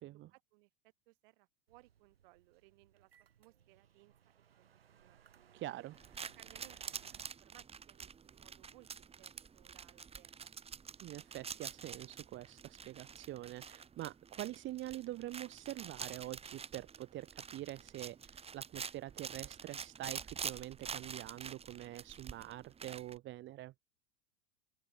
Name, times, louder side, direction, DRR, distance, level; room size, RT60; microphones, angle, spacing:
voice 1, 0.3-0.7 1.1-3.1 3.4-4.7 5.0-5.2 6.4-7.1 7.4-10.5, right 25 dB, 60° right, 4.7 m, -64 dB
sound 1, 1.7-7.2, right 9 dB, 80° right, 2.8 m, -66 dB
voice 2, 5.5-6.0 11.0-23.7, right 15 dB, 40° right, 1.3 m, -45 dB
sound 2, 5.9-23.2, right 6 dB, 20° right, 1.4 m, -47 dB
open air
hypercardioid pair, 85°, 29 cm